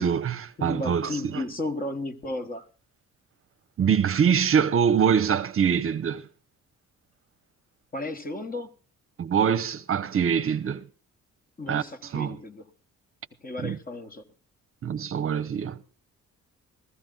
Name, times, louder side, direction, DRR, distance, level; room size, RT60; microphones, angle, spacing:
voice 1, 0.0-1.4 3.8-6.3 9.2-10.8 11.7-12.4 13.6-13.8 14.8-15.8, right 7 dB, 45° right, 0.8 m, -24 dB
voice 2, 0.6-2.7 7.9-8.7 11.6-12.7 13.4-14.2, left 2 dB, 30° left, 1.4 m, -34 dB
15.5 x 13.5 x 3.9 m
cardioid pair, 90°, 30 cm